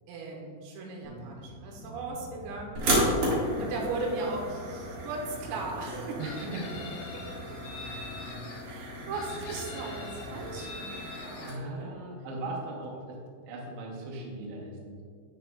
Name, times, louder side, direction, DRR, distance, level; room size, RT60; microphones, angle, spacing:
voice 1, 0.1-2.8 3.6-6.2 8.7-11.9, right 3 dB, 90° right, -2 dB, 3.8 m, -37 dB
sound 1, 1.0-10.6, equal, 50° left, 2.1 m, -46 dB
sound 2, 2.8-11.5, right 1 dB, 55° right, 2.2 m, -34 dB
Chicken rooster, 6.2-8.6 9.1-11.6, left 4 dB, 80° left, 3.0 m, -44 dB
voice 2, 6.2-7.0 11.4-13.2 13.5-15.0, right 2 dB, 75° right, -2 dB, 3.2 m, -38 dB
13.0 x 5.0 x 2.3 m, 2.1 s
omnidirectional pair, 5.8 m